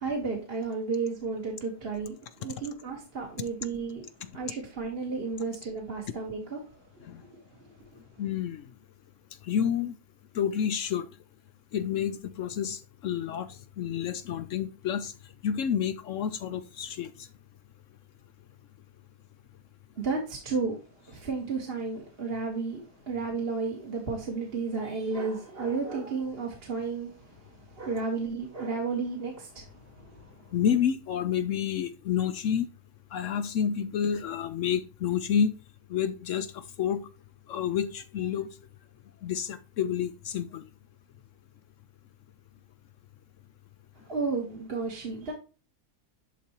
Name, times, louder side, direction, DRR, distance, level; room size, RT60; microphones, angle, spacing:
voice 1, 0.0-4.0 4.3-6.6 20.0-20.8 21.1-22.8 23.1-27.1 27.7-29.7 30.0-30.1 44.1-45.3, right 4 dB, 40° right, 1.5 m, -32 dB
voice 2, 8.2-8.6 9.4-9.9 10.3-11.1 11.7-15.1 15.4-17.3 30.5-32.7 33.1-35.5 35.9-37.0 37.5-38.5 39.2-40.6, left 8 dB, 65° left, 0.8 m, -29 dB
11.0 x 4.2 x 2.9 m
omnidirectional pair, 1.7 m